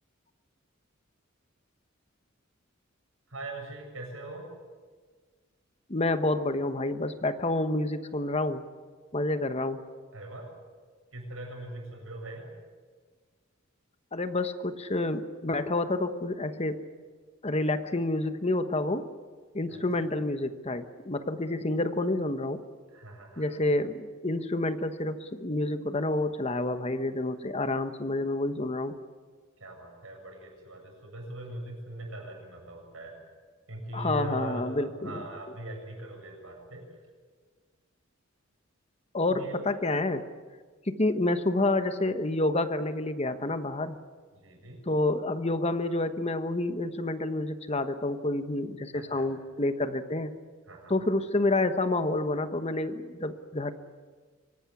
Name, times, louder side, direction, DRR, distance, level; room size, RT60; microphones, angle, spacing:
voice 1, 3.3-4.5 10.1-10.5 11.1-12.5 19.7-20.1 22.9-23.6 29.6-33.2 33.7-37.0 39.3-39.6 44.3-44.8 48.9-49.3 50.7-51.0, right 2 dB, 75° right, 2 dB, 7.3 m, -41 dB
voice 2, 5.9-8.6 9.1-9.8 14.1-16.8 17.4-19.1 19.5-22.6 23.4-28.9 33.9-35.2 39.1-40.3 40.8-44.0 44.9-50.3 50.9-53.7, left 2 dB, 30° left, 10 dB, 1.2 m, -29 dB
24.5 x 18.0 x 9.7 m, 1.5 s
head